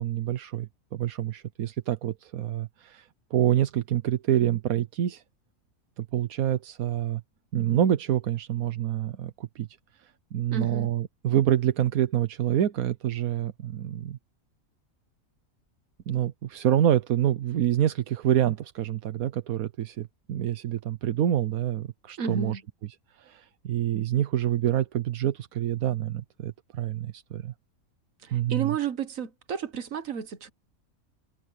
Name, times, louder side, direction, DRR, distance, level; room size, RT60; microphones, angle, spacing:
voice 1, 0.0-5.2 6.0-7.2 7.5-9.7 10.3-14.2 16.1-22.6 23.2-27.5 28.3-28.8, right 11 dB, 85° right, 1.3 m, -27 dB
voice 2, 10.5-10.9 22.2-22.6 28.2-30.5, right 7 dB, 70° right, 1.7 m, -31 dB
omnidirectional pair, 1.5 m